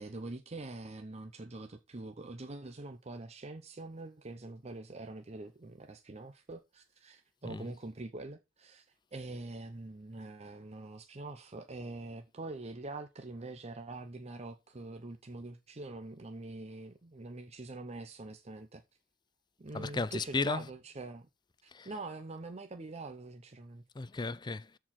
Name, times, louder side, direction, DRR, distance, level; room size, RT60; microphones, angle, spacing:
voice 1, 0.0-18.8 19.6-21.3 21.6-23.8, right 2 dB, 35° right, 0.7 m, -44 dB
voice 2, 19.7-20.6 21.8-21.9 24.0-24.8, left 3 dB, 20° left, 0.5 m, -34 dB
13.5 x 4.7 x 4.2 m
head